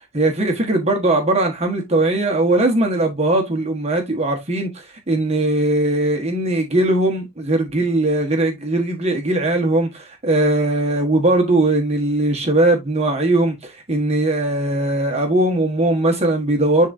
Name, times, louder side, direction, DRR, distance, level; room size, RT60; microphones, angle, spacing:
voice 1, 0.1-16.9, right 2 dB, 35° right, 1.4 m, -19 dB
10.5 x 3.7 x 2.6 m
head